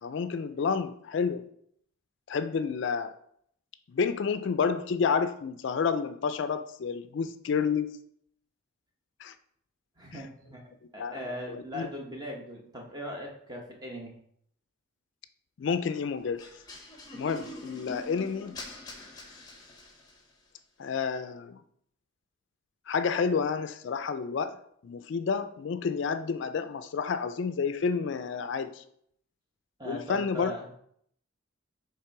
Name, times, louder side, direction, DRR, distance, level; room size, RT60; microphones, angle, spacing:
voice 1, 0.0-1.5 2.3-3.1 3.9-8.0 9.2-9.3 10.1-10.2 11.0-11.9 15.6-16.5 17.1-18.5 20.8-21.6 22.9-24.6 24.8-28.8 29.9-30.5, left 5 dB, 60° left, 11 dB, 0.3 m, -30 dB
voice 2, 10.0-14.1 29.8-30.7, equal, 20° right, 0 dB, 1.0 m, -40 dB
sound 1, 16.4-20.3, left 2 dB, 20° left, 0.8 m, -44 dB
6.7 x 3.3 x 4.6 m, 0.68 s
head